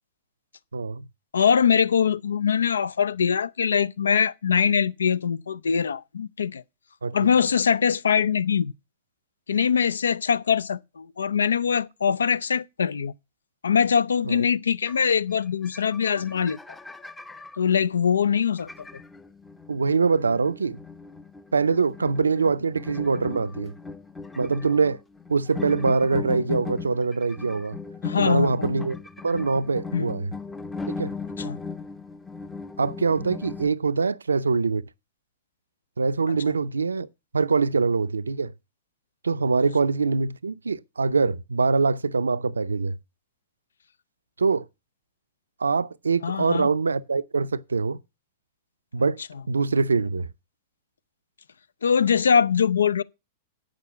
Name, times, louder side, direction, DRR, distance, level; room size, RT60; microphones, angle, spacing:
voice 1, 0.7-1.1 7.0-7.2 14.3-14.4 19.7-20.8 21.5-23.7 24.4-25.0 25.3-27.8 28.2-29.0 29.2-30.3 31.0-31.1 32.8-34.8 36.0-37.1 37.3-38.5 39.2-43.0 44.4-44.7 45.6-48.0 48.9-49.2 49.5-50.3, right 4 dB, 80° right, 0.4 m, -23 dB
voice 2, 1.3-6.6 7.1-8.7 9.5-13.1 13.6-16.6 17.6-18.7 28.0-28.6 29.9-30.1 31.4-31.6 46.2-46.7 51.8-53.0, left 7 dB, 75° left, 0.5 m, -22 dB
sound 1, 14.8-15.0 15.3-15.4 15.6-17.6 18.6-33.7, left 4 dB, 10° left, 0.7 m, -38 dB
8.3 x 6.4 x 7.0 m
figure-of-eight pair, 100°, 0 cm